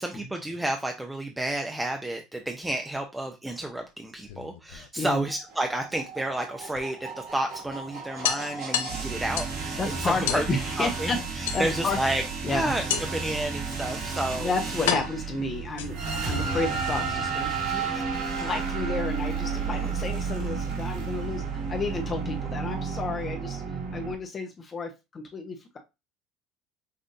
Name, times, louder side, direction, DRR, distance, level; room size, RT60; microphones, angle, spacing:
voice 1, 0.0-10.4 10.8-12.2 12.5-12.8 13.1-14.5 19.6-19.9, right 1 dB, 10° right, 3 dB, 0.6 m, -31 dB
sound 1, 4.1-5.3 6.7-6.8 7.2-7.3 7.6-7.7 8.2-9.6 10.3-10.5 11.5-12.0 12.9-13.3 14.1-14.2 14.9-16.2, left 8 dB, 85° left, 0.5 m, -31 dB
sound 2, 5.3-24.1, right 5 dB, 70° right, 1.9 m, -32 dB
voice 2, 9.8-11.2 11.5-12.0 12.4-12.7 14.3-23.6 23.9-25.8, left 3 dB, 35° left, 4 dB, 0.7 m, -31 dB
5.5 x 2.5 x 2.6 m, 0.25 s
supercardioid pair, 90°, 0 cm